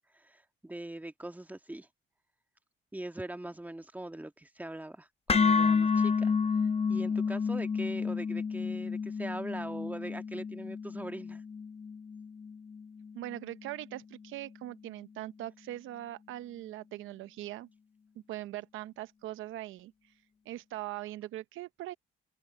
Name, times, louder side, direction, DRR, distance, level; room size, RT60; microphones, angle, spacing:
voice 1, 0.1-1.9 2.9-6.3 6.9-11.4, right 1 dB, 10° right, 1.6 m, -41 dB
sound 1, 5.3-13.4, left 5 dB, 30° left, 0.9 m, -30 dB
voice 2, 13.1-17.7 18.3-20.1 20.5-21.9, right 15 dB, 85° right, 0.7 m, -41 dB
open air
cardioid pair, 90°, 20 cm